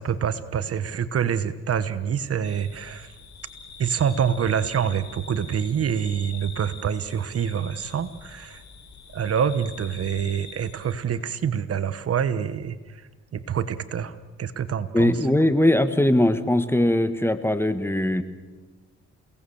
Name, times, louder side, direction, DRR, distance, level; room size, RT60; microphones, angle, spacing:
voice 1, 0.0-3.1 3.8-8.6 9.1-12.8 13.3-15.2, right 8 dB, 50° right, 13 dB, 1.3 m, -26 dB
sound 1, 2.4-10.9, left 5 dB, 65° left, 4.6 m, -45 dB
voice 2, 14.9-18.2, left 1 dB, 10° left, 11 dB, 1.5 m, -20 dB
30.0 x 18.5 x 7.2 m, 1.3 s
cardioid pair, 90°, 30 cm